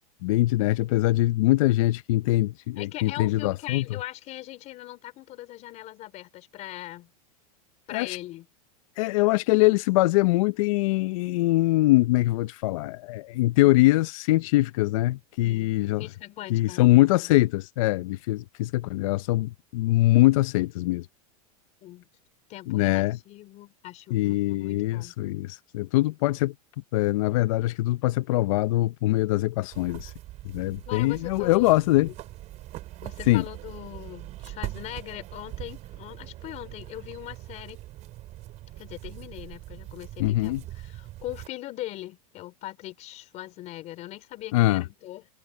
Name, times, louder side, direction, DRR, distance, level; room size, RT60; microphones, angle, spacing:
voice 1, 0.2-3.8 7.9-8.2 9.0-16.1 16.5-21.1 22.7-23.2 24.1-26.5 26.9-30.1 30.5-32.1 33.3-33.4 40.2-40.6 44.5-44.8, left 18 dB, 60° left, 0.7 m, -23 dB
voice 2, 2.8-7.1 7.9-8.5 15.4-17.4 21.8-22.1 22.5-25.1 30.9-32.1 33.0-37.8 38.8-45.3, left 15 dB, 35° left, 3.7 m, -40 dB
sound 1, 29.7-41.5, right 16 dB, 35° right, 5.5 m, -42 dB
supercardioid pair, 140°, 19 cm